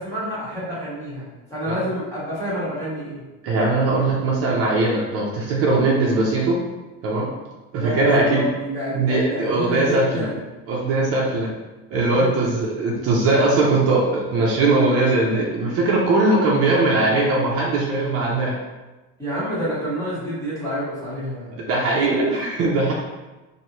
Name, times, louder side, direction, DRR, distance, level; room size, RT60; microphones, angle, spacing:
voice 1, 0.0-3.2 7.8-10.4 12.2-12.5 19.2-21.6 21.9-22.4, equal, 10° left, -9 dB, 1.2 m, -28 dB
voice 2, 3.4-6.6 7.0-7.3 7.7-8.4 8.9-10.2 10.7-11.5 11.9-18.5 21.7-22.9, right 2 dB, 45° right, -3 dB, 0.6 m, -20 dB
4.7 x 2.7 x 3.0 m, 1.1 s
cardioid pair, 180°, 33 cm